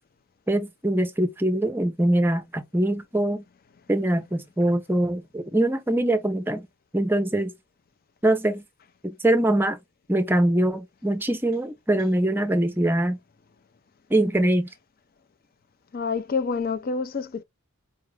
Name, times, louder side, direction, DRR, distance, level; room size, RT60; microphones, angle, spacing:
voice 1, 0.5-3.4 3.9-6.7 6.9-7.5 8.2-8.6 9.0-9.8 10.1-13.2 14.1-14.7, right 1 dB, 10° right, 0.5 m, -23 dB
voice 2, 15.9-17.4, left 5 dB, 40° left, 0.4 m, -27 dB
4.8 x 2.4 x 3.1 m
head